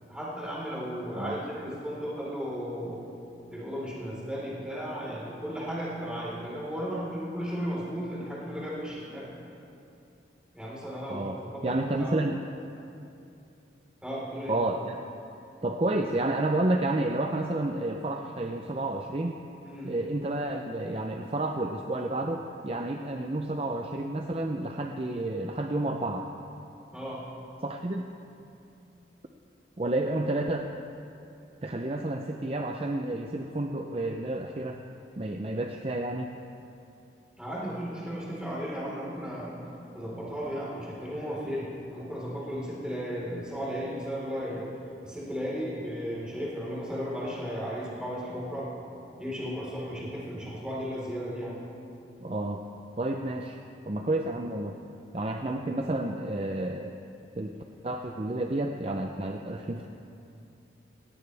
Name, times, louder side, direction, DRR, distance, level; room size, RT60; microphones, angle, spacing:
voice 1, 0.1-3.0 3.5-9.2 10.5-12.1 14.0-14.6 19.6-19.9 26.9-27.2 37.4-39.5 39.9-44.6 45.0-48.7 49.2-51.6, equal, 5° right, -7 dB, 4.1 m, -35 dB
voice 2, 11.1-12.4 14.5-15.0 15.6-19.4 19.8-26.3 27.6-28.0 29.8-30.7 31.6-34.8 35.2-36.3 52.2-52.6 53.0-53.6 53.9-54.8 55.1-56.9 57.4-57.5 57.8-59.9, right 2 dB, 35° right, 3 dB, 0.5 m, -30 dB
18.0 x 17.0 x 3.4 m, 2.7 s
head